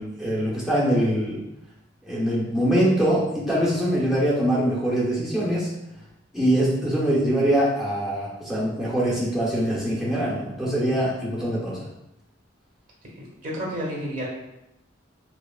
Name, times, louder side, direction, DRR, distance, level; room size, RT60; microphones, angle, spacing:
voice 1, 0.0-1.4 2.0-5.7 6.3-11.8, equal, ahead, -7 dB, 0.9 m, -23 dB
voice 2, 13.2-14.3, equal, 40° right, -4 dB, 1.0 m, -31 dB
5.2 x 2.0 x 2.4 m, 0.87 s
head